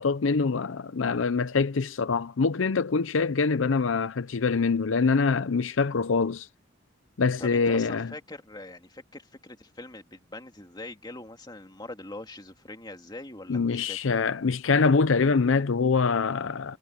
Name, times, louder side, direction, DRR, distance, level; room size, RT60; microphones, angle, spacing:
voice 1, 0.0-6.5 7.2-8.1 13.5-16.8, left 4 dB, 85° left, 0.6 m, -24 dB
voice 2, 7.4-14.1, left 2 dB, 20° left, 2.4 m, -42 dB
head